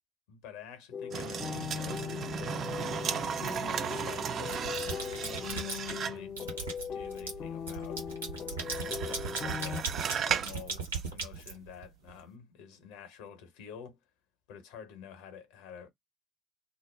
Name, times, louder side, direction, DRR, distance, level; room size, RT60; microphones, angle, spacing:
voice 1, 0.3-2.4 3.0-6.4 6.7-8.0 8.8-14.0 14.5-15.9, left 7 dB, 65° left, 0.8 m, -49 dB
sound 1, 0.9-9.8, left 7 dB, 45° left, 0.4 m, -39 dB
sound 2, 1.1-6.3 8.6-10.6 10.9-11.0, right 8 dB, 50° right, 0.3 m, -35 dB
sound 3, 3.5-4.0 4.4-6.0 6.4-12.1, right 4 dB, 80° right, 1.0 m, -38 dB
2.4 x 2.1 x 3.2 m
figure-of-eight pair, 50°, 0 cm